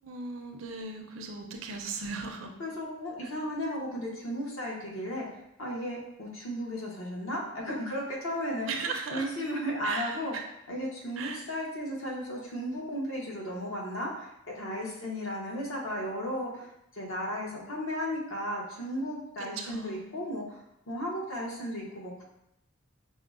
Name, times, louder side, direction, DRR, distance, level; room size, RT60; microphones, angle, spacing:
voice 1, 0.0-2.5 3.2-3.3 8.7-9.3 9.8-10.4 11.2-11.4 19.4-20.2, right 4 dB, 65° right, 3 dB, 0.5 m, -37 dB
voice 2, 2.6-5.3 5.6-8.7 9.1-10.3 10.7-22.2, equal, 70° left, -2 dB, 0.9 m, -35 dB
5.4 x 2.0 x 2.4 m, 0.83 s
head